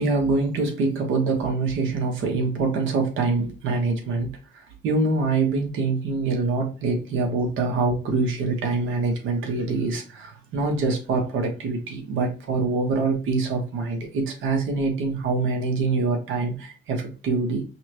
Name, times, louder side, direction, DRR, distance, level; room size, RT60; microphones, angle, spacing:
voice 1, 0.0-4.3 4.5-17.6, right 3 dB, 80° right, 2 dB, 1.1 m, -25 dB
5.5 x 2.3 x 2.9 m, 0.33 s
cardioid pair, 90°, 20 cm